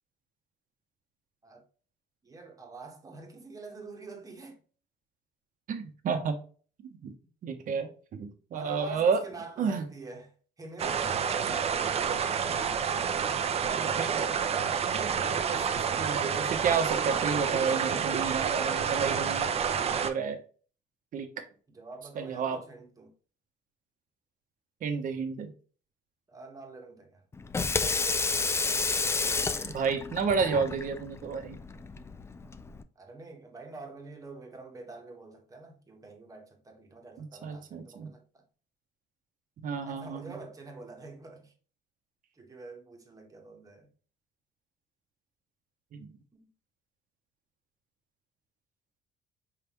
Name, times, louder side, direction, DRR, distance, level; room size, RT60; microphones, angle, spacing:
voice 1, 2.2-4.6 8.5-11.9 21.7-23.1 26.3-27.3 32.9-38.4 39.8-41.5 42.3-43.9 46.3-46.5, right 3 dB, 20° right, 1.3 m, -46 dB
voice 2, 5.7-6.4 6.8-7.1 7.4-9.2 9.6-9.8 13.7-14.2 14.9-15.6 16.0-19.5 20.0-20.4 21.1-21.4 22.2-22.6 24.8-25.5 29.6-31.6 37.2-38.1 39.6-40.3 45.9-46.1, right 5 dB, 55° right, 0.9 m, -31 dB
sound 1, 10.8-20.1, right 7 dB, 40° right, 0.5 m, -29 dB
Water tap faucet / Sink (filling or washing), 27.3-32.8, left 4 dB, 15° left, 0.3 m, -31 dB
4.8 x 3.5 x 3.0 m
cardioid pair, 110°, 17 cm